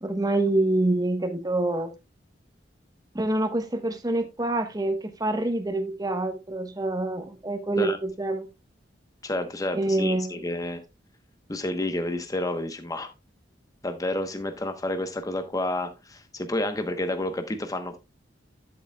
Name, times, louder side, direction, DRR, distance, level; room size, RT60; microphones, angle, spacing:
voice 1, 0.0-1.9 3.1-8.5 9.7-10.4, right 2 dB, 20° right, 1.0 m, -26 dB
voice 2, 9.2-10.8 11.5-13.1 13.8-18.0, left 1 dB, 20° left, 0.9 m, -30 dB
10.0 x 8.6 x 2.2 m
head